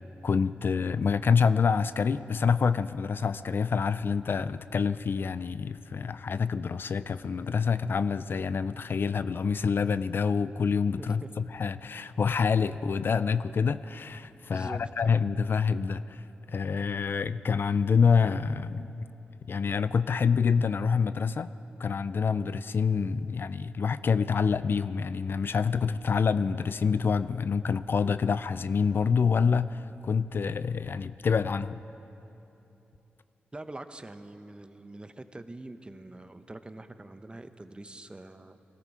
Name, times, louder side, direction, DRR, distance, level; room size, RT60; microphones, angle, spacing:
voice 1, 0.2-18.9 19.5-21.5 21.8-31.8, left 5 dB, 60° left, 14 dB, 0.4 m, -27 dB
voice 2, 11.0-11.3 14.5-14.9 33.5-38.6, right 2 dB, 25° right, 10 dB, 0.8 m, -44 dB
21.0 x 13.5 x 4.9 m, 2.9 s
cardioid pair, 50°, 4 cm